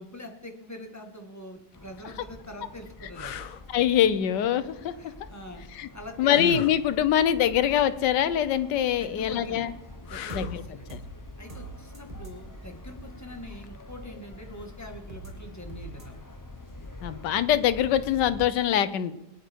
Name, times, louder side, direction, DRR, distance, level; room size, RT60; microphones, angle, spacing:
voice 1, 0.0-3.4 5.0-6.4 9.0-9.7 10.0-10.9 11.4-16.2, equal, 10° left, 3 dB, 1.6 m, -44 dB
sound 1, 1.6-1.8 2.4-2.5 3.1-3.6 6.3-6.8 10.1-10.7 13.6-13.8, left 8 dB, 60° left, 1.0 m, -36 dB
sound 2, 1.7-18.5, left 1 dB, 25° left, 0.4 m, -46 dB
voice 2, 3.7-5.1 5.7-5.9 6.2-9.7 10.3-10.6 10.9-11.0 17.0-19.1, left 10 dB, 85° left, 13 dB, 1.4 m, -24 dB
sound 3, 10.3-10.5 10.9-11.1 11.5-11.7 11.9-12.3 15.1-15.3 15.7-16.0, right 4 dB, 20° right, 2.0 m, -40 dB
22.5 x 10.0 x 4.5 m, 0.91 s
omnidirectional pair, 1.8 m